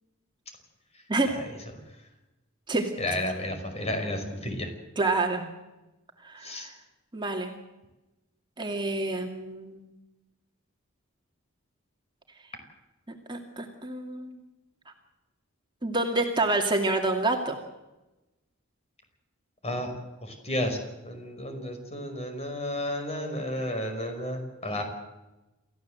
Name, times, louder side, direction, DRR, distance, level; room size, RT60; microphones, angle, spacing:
voice 1, 3.0-4.7 6.4-6.7 19.6-19.9 20.2-20.8 21.0-24.8, left 1 dB, 30° left, 5 dB, 5.3 m, -32 dB
voice 2, 5.0-5.5 6.2-6.7 7.1-7.5 8.6-9.9 13.1-14.4 15.8-17.6, right 2 dB, 25° right, 2 dB, 2.4 m, -28 dB
28.0 x 15.0 x 8.0 m, 1.0 s
head